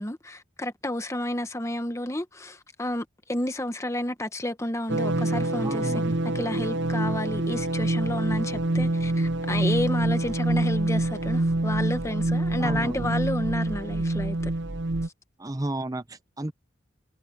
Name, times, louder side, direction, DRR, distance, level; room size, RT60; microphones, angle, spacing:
voice 1, 0.0-6.0 6.3-14.5, left 1 dB, 15° left, 1.0 m, -31 dB
sound 1, 4.9-15.1, right 2 dB, 65° right, 0.8 m, -26 dB
voice 2, 5.6-6.2 12.6-13.1 15.4-16.5, right 1 dB, 20° right, 0.8 m, -32 dB
head